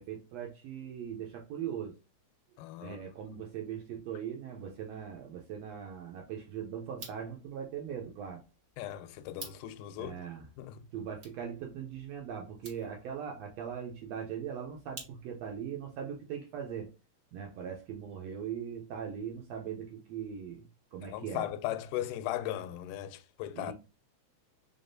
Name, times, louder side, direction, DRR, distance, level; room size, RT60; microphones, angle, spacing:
voice 1, 0.0-1.9 2.8-8.4 10.0-10.5 10.9-16.9 17.3-20.6 20.9-21.5 23.5-23.7, right 8 dB, 80° right, 1.5 m, -40 dB
voice 2, 2.6-3.0 8.8-10.2 10.6-10.8 21.1-23.7, left 12 dB, 90° left, 2.1 m, -37 dB
sound 1, 6.9-15.6, right 3 dB, 55° right, 1.1 m, -53 dB
4.4 x 3.5 x 2.6 m
omnidirectional pair, 3.6 m